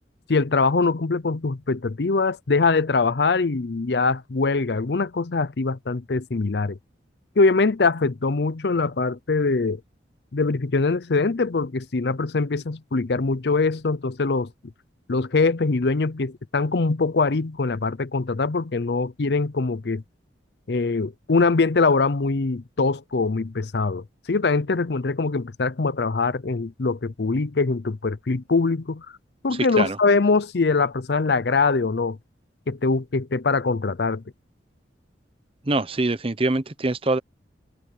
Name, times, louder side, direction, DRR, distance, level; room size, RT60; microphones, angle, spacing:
voice 1, 0.3-6.8 7.4-9.8 10.3-14.5 15.1-20.0 20.7-29.1 29.4-32.2 32.7-34.2, left 3 dB, 60° left, 0.6 m, -23 dB
voice 2, 35.7-37.2, right 2 dB, 30° right, 0.9 m, -24 dB
head